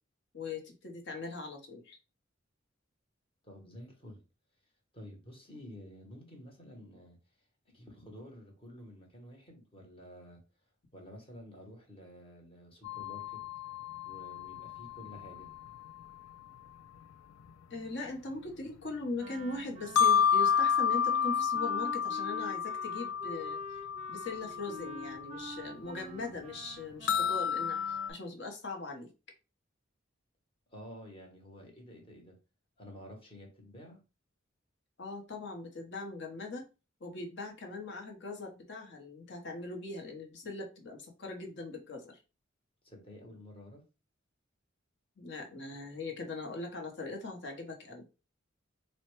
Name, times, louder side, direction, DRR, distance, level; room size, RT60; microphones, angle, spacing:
voice 1, 0.3-2.0 17.7-23.8 24.1-29.1 35.0-36.7 37.0-42.2 45.2-48.0, left 3 dB, 60° left, 0.9 m, -40 dB
voice 2, 3.4-4.2 4.9-7.2 7.7-10.4 10.9-13.4 14.0-15.5 30.7-32.4 32.8-34.0 42.8-43.8, equal, 25° left, 1.0 m, -50 dB
sound 1, 12.8-16.6 17.5-17.6 19.8-25.3 25.6-25.7 26.2-26.3 27.0-28.1, left 7 dB, 85° left, 0.4 m, -31 dB
Wind instrument woodwind instrument, 19.2-28.2, right 1 dB, 35° right, 0.4 m, -47 dB
4.2 x 2.1 x 3.0 m
head